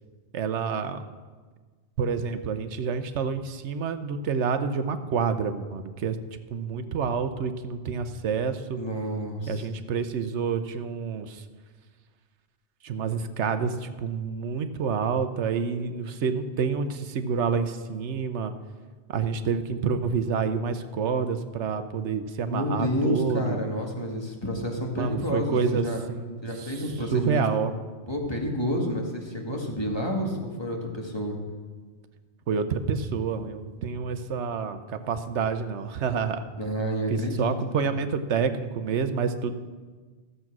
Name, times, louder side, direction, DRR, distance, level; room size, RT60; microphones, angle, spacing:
voice 1, 0.3-1.0 2.0-6.2 6.5-8.8 9.5-11.4 12.8-18.5 19.1-23.6 24.9-26.8 27.1-27.7 32.5-36.4 37.1-39.5, right 6 dB, 80° right, 10 dB, 1.1 m, -28 dB
voice 2, 8.8-9.6 22.5-26.0 26.4-27.4 28.1-31.4 36.6-37.5 37.8-37.9, equal, 25° left, 0 dB, 1.8 m, -29 dB
14.0 x 7.7 x 6.0 m, 1.4 s
omnidirectional pair, 1.2 m